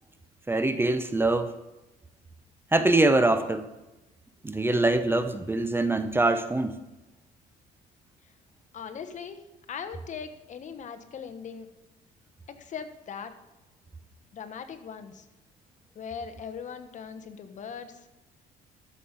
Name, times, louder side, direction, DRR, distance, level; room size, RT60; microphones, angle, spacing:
voice 1, 0.5-1.5 2.7-3.7 4.4-6.8, right 2 dB, 15° right, 10 dB, 0.7 m, -24 dB
voice 2, 8.7-9.4 9.7-11.7 12.5-13.3 14.3-15.3 15.9-18.1, left 6 dB, 45° left, 8 dB, 1.2 m, -40 dB
13.0 x 7.3 x 5.2 m, 1.0 s
cardioid pair, 110°, 17 cm